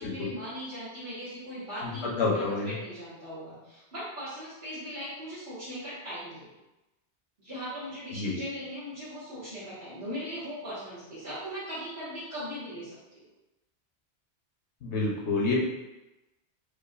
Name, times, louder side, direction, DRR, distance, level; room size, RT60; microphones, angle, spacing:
voice 1, 0.0-6.5 7.4-13.3, equal, 50° right, -15 dB, 1.6 m, -39 dB
voice 2, 1.8-2.7 8.1-8.4 14.8-15.5, left 3 dB, 80° left, -2 dB, 1.1 m, -29 dB
5.0 x 2.5 x 2.4 m, 1.0 s
omnidirectional pair, 1.1 m